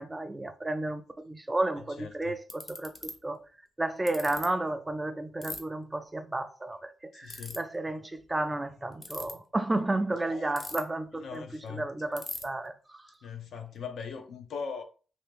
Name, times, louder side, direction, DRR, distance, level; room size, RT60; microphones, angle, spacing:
voice 1, 0.0-2.9 3.2-3.4 3.8-6.8 7.2-12.7, right 2 dB, 15° right, 0.3 m, -32 dB
Ratchet pawl, 1.8-1.9 2.5-3.1 4.1-4.4 5.4-5.6 7.3-7.6 8.9-9.3 10.6-11.0 11.3-11.4 11.7-11.8 12.2-12.4, left 2 dB, 25° left, 0.7 m, -38 dB
voice 2, 2.0-2.4 7.1-7.6 10.1-10.5 11.1-11.9 13.2-14.8, left 6 dB, 70° left, 0.7 m, -40 dB
3.3 x 2.8 x 3.4 m
cardioid pair, 140°, 0 cm